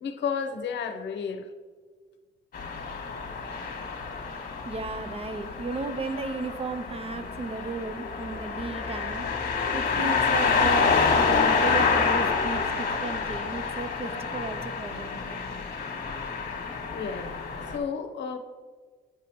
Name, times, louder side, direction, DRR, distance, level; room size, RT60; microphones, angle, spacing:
voice 1, 0.0-1.5 16.9-17.3 17.7-18.4, left 6 dB, 65° left, 7 dB, 0.8 m, -32 dB
sound 1, 2.5-17.8, left 5 dB, 45° left, 1.3 m, -28 dB
voice 2, 4.7-9.3 9.7-15.2, right 3 dB, 30° right, 10 dB, 0.5 m, -34 dB
8.9 x 4.9 x 3.0 m, 1.5 s
cardioid pair, 90°, 20 cm